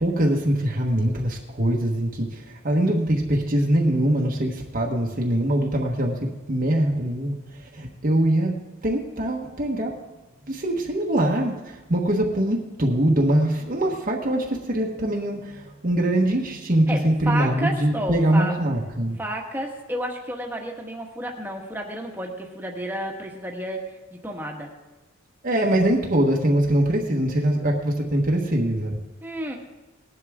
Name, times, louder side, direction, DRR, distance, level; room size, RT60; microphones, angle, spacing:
voice 1, 0.0-9.9 10.5-19.2 25.4-29.0, right 1 dB, 40° right, -1 dB, 1.3 m, -23 dB
voice 2, 16.9-18.6 19.2-24.7 29.2-29.6, right 1 dB, 10° right, 1 dB, 1.5 m, -31 dB
19.0 x 11.0 x 3.6 m, 1.1 s
head